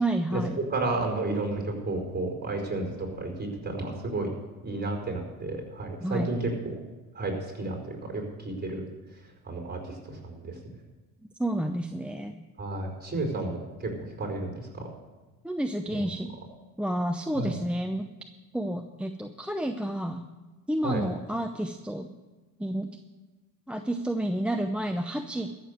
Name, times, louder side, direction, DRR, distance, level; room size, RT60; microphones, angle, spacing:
voice 1, 0.0-0.6 6.0-6.3 11.4-12.4 15.4-16.4 16.8-18.1 18.5-20.2 20.7-22.1 22.6-22.9 23.7-25.5, right 1 dB, 5° right, 7 dB, 0.7 m, -30 dB
voice 2, 0.7-4.3 4.6-6.7 7.1-8.8 9.4-10.6 12.6-13.9 14.2-14.9 15.9-16.0 17.3-17.5 20.8-21.0, right 2 dB, 20° right, 2 dB, 4.7 m, -32 dB
14.0 x 7.1 x 8.0 m, 1.2 s
supercardioid pair, 75°, 42 cm